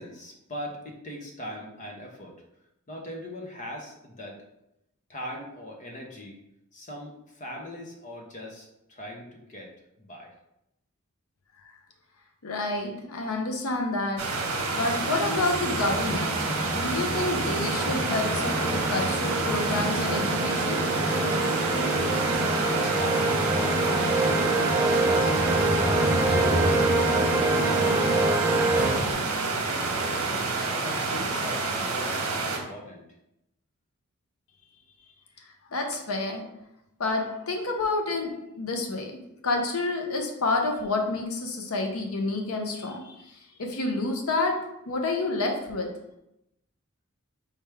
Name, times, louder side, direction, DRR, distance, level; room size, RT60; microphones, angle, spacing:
voice 1, 0.0-2.4 2.9-4.4 5.1-6.4 6.7-9.7 10.0-10.3 21.8-27.8 28.1-30.2 30.8-33.0, left 1 dB, 35° left, 0 dB, 0.8 m, -41 dB
voice 2, 12.4-14.2 14.7-16.4 16.7-20.8 35.7-36.4 37.0-43.2 43.6-45.9, left 2 dB, 80° left, 3 dB, 0.7 m, -29 dB
sound 1, 14.2-32.6, right 3 dB, 80° right, 1.0 m, -29 dB
sound 2, 14.4-29.1, right 2 dB, 10° right, 0.5 m, -26 dB
4.4 x 3.3 x 3.4 m, 0.85 s
head